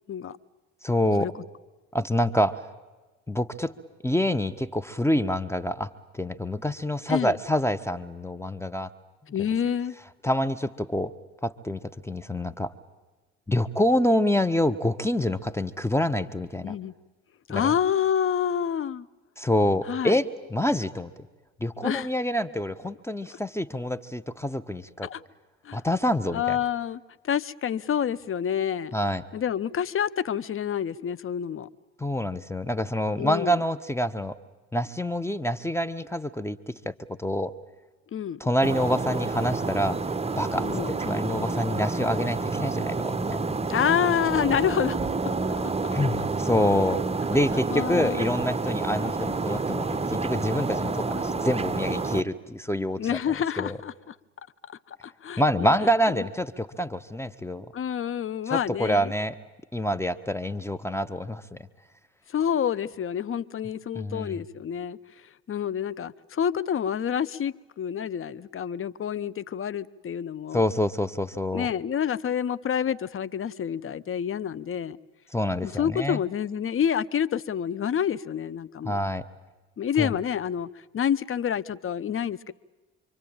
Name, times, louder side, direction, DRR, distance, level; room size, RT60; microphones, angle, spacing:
voice 1, 0.8-1.3 1.9-2.6 3.3-3.7 4.0-8.9 10.2-11.1 11.4-12.7 13.5-16.7 17.5-17.7 19.4-21.1 21.6-25.1 25.7-26.6 28.9-29.2 32.0-34.4 34.7-37.5 38.4-40.0 40.4-43.4 45.9-47.0 47.3-53.0 53.6-53.8 55.4-57.7 58.5-59.3 59.7-61.6 63.9-64.4 70.5-71.7 75.3-76.2 78.8-79.2 80.0-80.1, left 1 dB, 5° left, 11 dB, 1.2 m, -26 dB
voice 2, 9.3-9.9 16.6-16.9 17.5-19.1 19.9-20.2 21.8-22.1 25.0-25.2 25.6-25.8 26.3-28.9 29.3-31.7 33.2-33.6 38.1-38.4 40.6-40.9 43.7-45.0 45.5-45.7 47.7-48.4 53.0-54.1 54.7-55.7 56.1-56.2 57.7-59.1 62.3-65.0 65.5-70.7 71.5-75.0 75.6-79.0 79.8-80.7 80.9-82.5, left 8 dB, 35° left, 14 dB, 1.0 m, -28 dB
sound 1, 38.6-52.2, right 3 dB, 15° right, 1.2 m, -29 dB
27.5 x 24.0 x 8.9 m, 1.2 s
hypercardioid pair, 60°, 38 cm